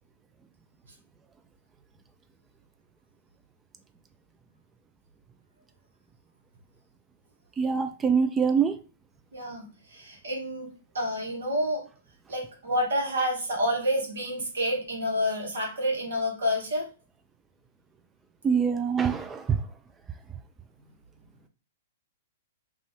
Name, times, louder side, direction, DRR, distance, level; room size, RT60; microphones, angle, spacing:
voice 1, 7.6-8.7 18.4-19.6, right 6 dB, 15° right, 8 dB, 0.3 m, -24 dB
voice 2, 9.3-10.7 10.9-11.8 12.3-16.9, equal, 65° right, 0 dB, 1.1 m, -29 dB
2.6 x 2.4 x 3.2 m, 0.35 s
figure-of-eight pair, 110°, 0 cm